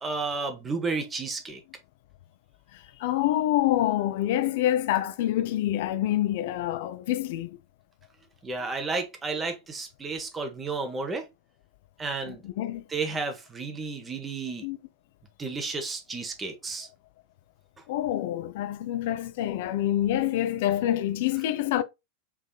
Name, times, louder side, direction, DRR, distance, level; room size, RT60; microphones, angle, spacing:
voice 1, 0.0-1.6 8.4-11.3 12.0-12.4 12.9-14.7 15.4-16.9, right 4 dB, 15° right, 0.8 m, -32 dB
voice 2, 2.7-7.6 12.3-12.9 14.6-14.8 17.9-21.8, left 13 dB, 50° left, 0.3 m, -27 dB
3.4 x 3.1 x 2.2 m
figure-of-eight pair, 90°, 0 cm